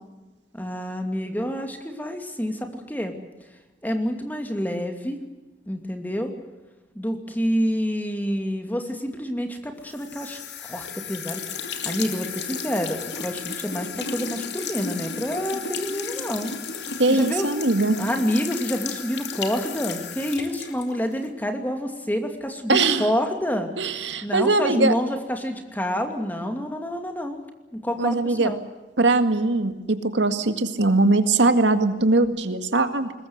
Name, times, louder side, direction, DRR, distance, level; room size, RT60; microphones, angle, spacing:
voice 1, 0.5-3.1 3.8-5.2 5.7-6.3 6.9-11.4 11.8-17.5 18.0-23.7 24.2-27.4 27.7-28.6, equal, 10° left, 5 dB, 2.5 m, -28 dB
sound 1, 9.9-21.3, left 6 dB, 75° left, 2.7 m, -34 dB
voice 2, 17.0-18.0 22.7-23.1 23.8-24.9 28.0-28.5 29.0-33.1, right 2 dB, 85° right, 8 dB, 2.0 m, -21 dB
21.5 x 20.5 x 8.1 m, 1.1 s
head